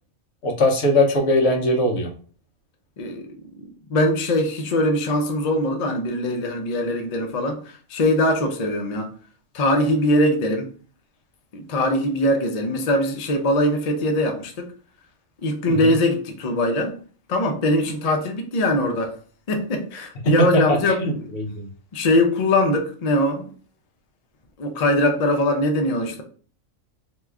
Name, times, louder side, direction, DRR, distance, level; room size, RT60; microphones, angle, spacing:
voice 1, 0.4-2.1 15.7-15.9 21.0-21.7, left 1 dB, 60° left, 0.9 m, -21 dB
voice 2, 3.0-3.3 3.9-9.1 9.5-10.7 11.5-14.7 15.4-17.0 17.3-19.1 19.5-21.3 21.9-23.5 24.6-26.2, left 1 dB, 80° left, 0.3 m, -21 dB
2.9 x 2.3 x 3.3 m
omnidirectional pair, 1.4 m